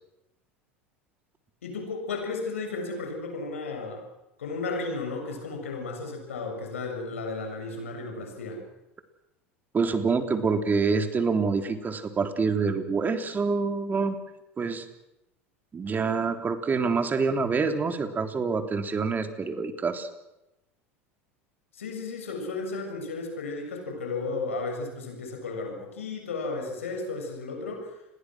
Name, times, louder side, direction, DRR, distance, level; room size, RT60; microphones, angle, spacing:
voice 1, 1.6-4.1 4.4-8.6 21.7-28.0, left 3 dB, 80° left, 3 dB, 7.4 m, -34 dB
voice 2, 9.7-14.2 14.6-14.8 15.7-20.1, right 4 dB, 25° right, 7 dB, 3.4 m, -26 dB
29.5 x 21.5 x 6.4 m, 0.91 s
hypercardioid pair, 80°, 7 cm